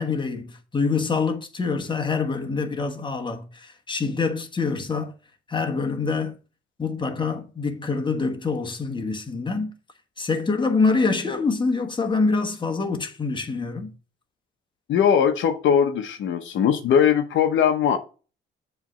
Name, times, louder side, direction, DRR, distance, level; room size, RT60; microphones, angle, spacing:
voice 1, 0.0-5.1 5.5-6.3 6.8-9.7 10.2-13.9, left 4 dB, 25° left, 1.3 m, -25 dB
voice 2, 14.9-18.0, left 8 dB, 75° left, 0.9 m, -20 dB
7.3 x 3.4 x 6.1 m
cardioid pair, 90°, 20 cm